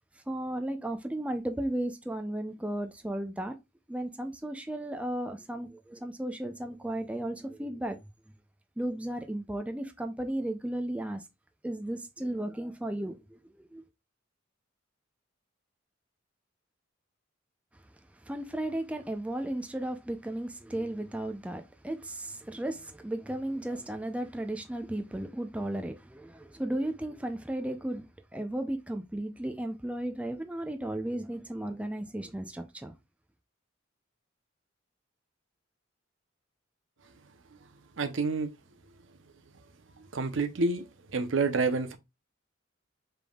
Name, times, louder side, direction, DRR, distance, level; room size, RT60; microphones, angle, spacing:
voice 1, 0.3-3.6 3.9-8.1 8.8-11.3 11.6-13.8 18.1-32.9, right 1 dB, 5° right, 0.4 m, -35 dB
voice 2, 38.0-38.5 40.1-40.8 41.1-42.0, right 3 dB, 70° right, 0.7 m, -28 dB
5.2 x 3.4 x 2.3 m
head